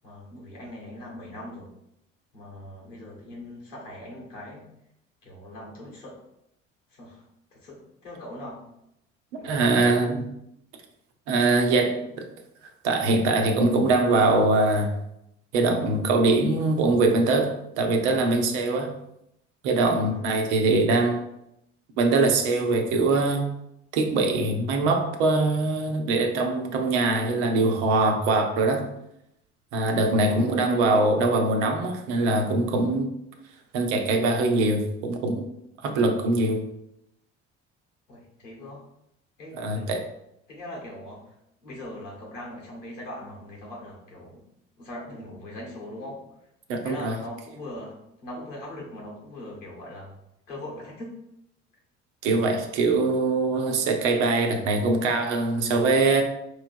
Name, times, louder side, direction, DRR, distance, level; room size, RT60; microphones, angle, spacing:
voice 1, 0.0-1.7 2.3-4.7 5.2-6.2 6.9-7.3 7.5-8.7 9.4-10.0 20.1-20.3 30.2-30.5 38.1-38.8 39.4-39.9 40.5-44.4 44.8-46.2 46.8-47.9 48.2-50.1 50.5-51.2, left 1 dB, 90° left, -3 dB, 1.5 m, -40 dB
voice 2, 9.3-10.2 11.3-12.3 12.8-14.9 15.5-18.9 19.6-21.2 22.0-23.4 23.9-28.9 29.7-33.1 33.7-35.4 35.8-36.6 39.5-40.0 46.7-47.1 52.2-56.2, right 2 dB, 70° right, 4 dB, 0.8 m, -22 dB
4.8 x 3.1 x 2.6 m, 0.80 s
hypercardioid pair, 60°, 36 cm